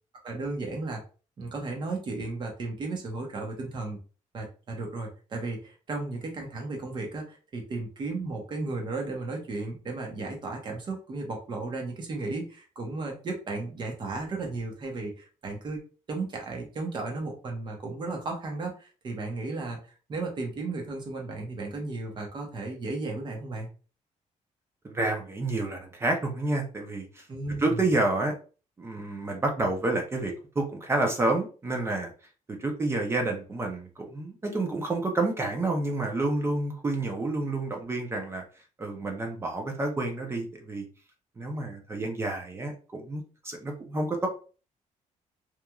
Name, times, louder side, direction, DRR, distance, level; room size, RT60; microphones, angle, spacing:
voice 1, 0.2-1.0 1.4-4.0 4.3-15.8 16.1-19.8 20.1-23.7 27.3-27.8, right 3 dB, 35° right, 1 dB, 0.8 m, -34 dB
voice 2, 24.8-27.2 27.6-28.4 28.8-32.1 32.5-38.4 38.8-40.9 41.4-44.3, right 2 dB, 20° right, 2 dB, 0.5 m, -29 dB
2.9 x 2.4 x 2.3 m, 0.36 s
cardioid pair, 170°, 13 cm